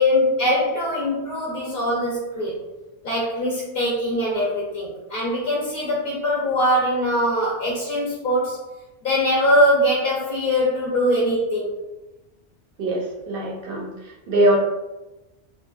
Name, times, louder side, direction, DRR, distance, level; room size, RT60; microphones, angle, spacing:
voice 1, 0.0-2.6 3.0-8.6 9.0-11.8, equal, 55° left, -5 dB, 0.6 m, -22 dB
voice 2, 12.8-14.6, right 1 dB, 60° right, -1 dB, 0.7 m, -22 dB
2.8 x 2.2 x 2.4 m, 1.1 s
omnidirectional pair, 1.2 m